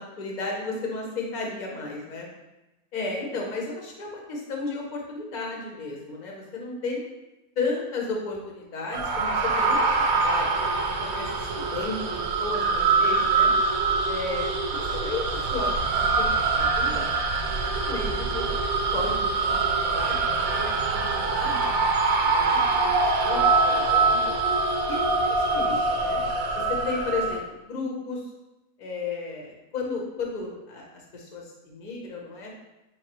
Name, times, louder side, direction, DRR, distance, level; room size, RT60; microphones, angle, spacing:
voice 1, 0.0-2.3 2.9-7.0 7.6-10.7 11.0-13.5 14.0-17.1 17.7-18.5 18.9-19.6 19.9-24.3 24.9-26.2 26.5-27.4 27.7-28.2 28.8-32.5, left 3 dB, 40° left, -1 dB, 0.7 m, -34 dB
sound 1, 8.9-27.4, right 3 dB, 70° right, 0.9 m, -24 dB
4.6 x 3.2 x 2.9 m, 1.0 s
omnidirectional pair, 1.6 m